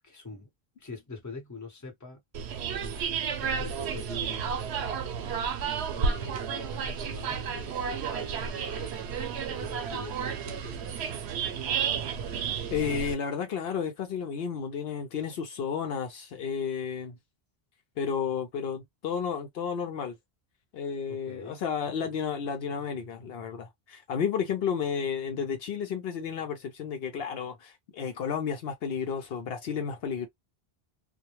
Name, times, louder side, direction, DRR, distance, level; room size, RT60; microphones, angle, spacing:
voice 1, 0.0-0.5 0.8-2.2 3.3-4.6 5.9-9.0 9.4-10.9 21.1-21.6, left 3 dB, 20° left, 0.9 m, -44 dB
sound 1, 2.3-13.1, right 6 dB, 85° right, 0.8 m, -32 dB
voice 2, 12.7-17.2 18.0-20.1 20.7-30.3, left 7 dB, 70° left, 0.8 m, -32 dB
2.2 x 2.2 x 2.9 m
omnidirectional pair, 1.1 m